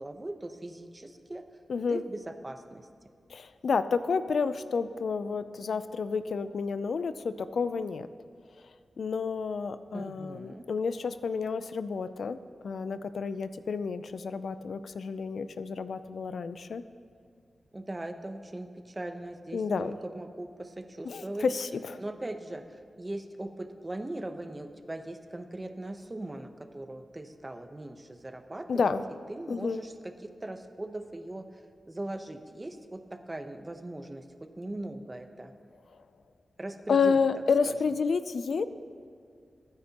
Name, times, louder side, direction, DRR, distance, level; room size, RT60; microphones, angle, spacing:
voice 1, 0.0-1.6 1.9-2.9 9.9-10.7 17.7-21.5 22.0-29.0 29.3-35.5 36.6-37.8, right 1 dB, 20° right, 7 dB, 0.8 m, -40 dB
voice 2, 1.7-2.0 3.3-8.1 9.0-12.4 12.6-16.8 19.5-19.9 21.1-21.2 21.5-21.7 28.7-29.0 29.5-29.8 36.9-38.6, left 5 dB, 75° left, 12 dB, 0.4 m, -30 dB
23.0 x 9.5 x 3.0 m, 2.4 s
wide cardioid pair, 95°, 0 cm